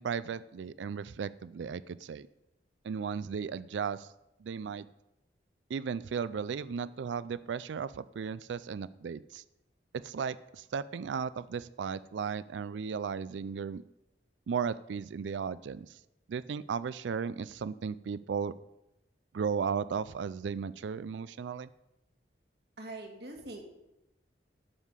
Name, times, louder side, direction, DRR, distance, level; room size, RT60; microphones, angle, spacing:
voice 1, 0.0-2.3 2.8-4.1 4.4-4.9 5.7-9.4 9.9-13.8 14.5-16.0 16.3-18.5 19.3-21.7, right 6 dB, 90° right, 17 dB, 0.4 m, -35 dB
voice 2, 22.8-23.6, right 2 dB, 65° right, 2 dB, 2.1 m, -43 dB
12.0 x 5.6 x 8.2 m, 0.89 s
head